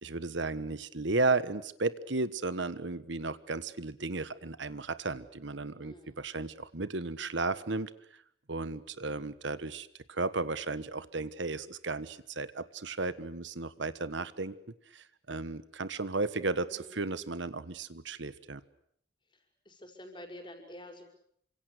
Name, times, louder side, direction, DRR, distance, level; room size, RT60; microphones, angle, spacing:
voice 1, 0.0-7.9 8.5-14.6 14.9-18.6, right 3 dB, 70° right, 14 dB, 1.3 m, -34 dB
voice 2, 5.8-6.2 16.7-17.0 19.3-21.0, left 1 dB, 25° left, 5 dB, 5.8 m, -49 dB
29.0 x 26.0 x 6.6 m, 0.70 s
head